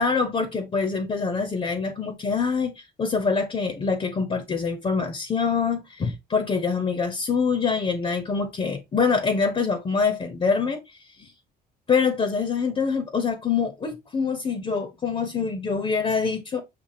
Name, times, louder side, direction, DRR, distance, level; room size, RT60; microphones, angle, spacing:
voice 1, 0.0-2.7 3.0-10.8 11.2-11.3 11.9-16.6, left 5 dB, 35° left, 0.9 m, -25 dB
6.8 x 2.7 x 2.7 m
cardioid pair, 110°, 17 cm